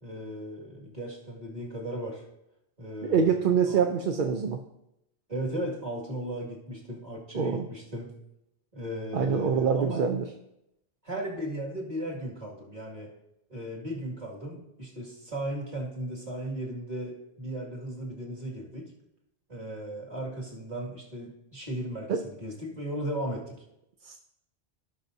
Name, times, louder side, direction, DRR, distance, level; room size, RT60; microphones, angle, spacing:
voice 1, 0.0-2.2 2.8-3.8 5.3-8.1 8.7-10.1 11.0-13.1 13.5-18.9 19.5-23.6, right 1 dB, 40° right, -3 dB, 2.2 m, -36 dB
voice 2, 3.0-4.6 7.3-7.7 9.1-10.2 22.1-22.2 24.0-24.2, right 6 dB, 55° right, 5 dB, 0.7 m, -25 dB
17.5 x 5.8 x 2.7 m, 0.84 s
omnidirectional pair, 1.1 m